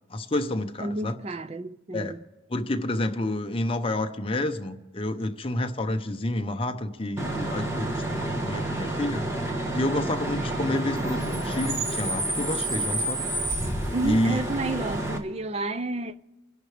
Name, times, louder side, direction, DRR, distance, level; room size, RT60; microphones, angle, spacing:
voice 1, 0.1-1.2 1.9-2.2 2.5-9.2 9.7-13.3 14.0-14.4, left 1 dB, 25° left, 0.8 m, -29 dB
voice 2, 0.8-2.2 13.9-16.2, right 2 dB, 30° right, 0.4 m, -31 dB
Bus / Idling / Screech, 7.2-15.2, right 1 dB, 15° right, 1.2 m, -29 dB
29.0 x 11.0 x 3.4 m
head